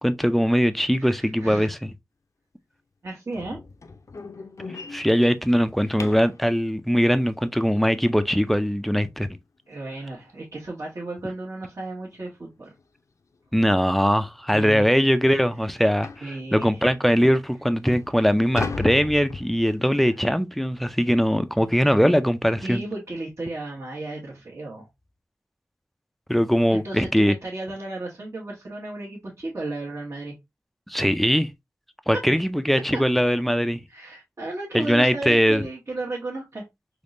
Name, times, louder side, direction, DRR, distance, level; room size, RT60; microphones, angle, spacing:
voice 1, 0.0-1.9 4.9-9.4 13.5-22.8 26.3-27.3 30.9-31.5 32.1-33.8 34.7-35.6, equal, 5° left, 0.4 m, -21 dB
voice 2, 1.0-1.7 3.0-3.6 9.7-12.7 14.5-14.9 16.2-16.9 22.6-24.9 26.6-30.3 32.9-33.0 33.9-36.6, right 2 dB, 55° right, 1.2 m, -34 dB
sound 1, 3.3-6.4 9.2-9.3 9.8-10.0 10.4-10.5 10.9-11.0 12.1-12.3 12.7-12.8 13.5-13.6 13.9-14.0 14.5-14.6 16.0-16.3 17.1-17.2 17.6-19.9, left 4 dB, 65° left, 0.5 m, -36 dB
3.5 x 3.1 x 2.5 m
wide cardioid pair, 70°, 6 cm